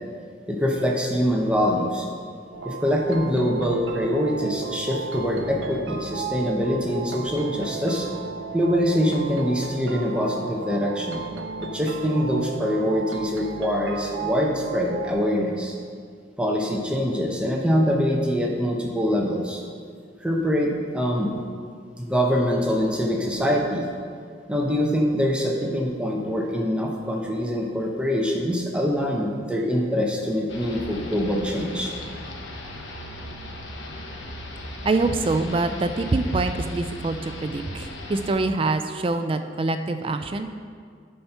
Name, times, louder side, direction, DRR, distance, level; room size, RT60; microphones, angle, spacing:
voice 1, 0.5-2.1 2.6-8.1 8.5-11.2 11.6-15.7 16.4-19.6 20.2-21.3 22.0-23.8 24.5-31.9, equal, 5° right, -1 dB, 0.8 m, -24 dB
sound 1, 2.5-15.1, right 4 dB, 85° right, 0.6 m, -35 dB
sound 2, 30.5-38.4, left 1 dB, 80° left, 1.0 m, -37 dB
voice 2, 34.8-40.5, right 3 dB, 30° right, 8 dB, 0.3 m, -25 dB
10.0 x 4.4 x 5.7 m, 2.1 s
head